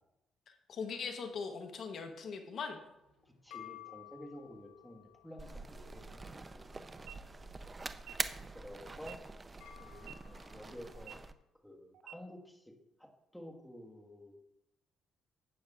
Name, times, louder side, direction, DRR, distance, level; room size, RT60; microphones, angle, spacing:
voice 1, 0.5-2.8, left 5 dB, 60° left, 5 dB, 0.9 m, -41 dB
sound 1, 2.9-11.4, left 12 dB, 90° left, 1.0 m, -57 dB
voice 2, 3.2-6.2 6.5-6.6 8.5-9.2 9.8-11.2 11.6-12.7 13.0-14.4, equal, 5° left, 0 dB, 1.5 m, -51 dB
sound 2, 5.4-11.3, right 3 dB, 25° right, 0.5 m, -44 dB
sound 3, 6.9-7.2 7.9-8.1 8.9-9.2 9.9-10.1 10.9-11.2 11.9-12.1, right 12 dB, 85° right, 0.3 m, -50 dB
12.5 x 8.7 x 2.4 m, 0.89 s
cardioid pair, 90°, 0 cm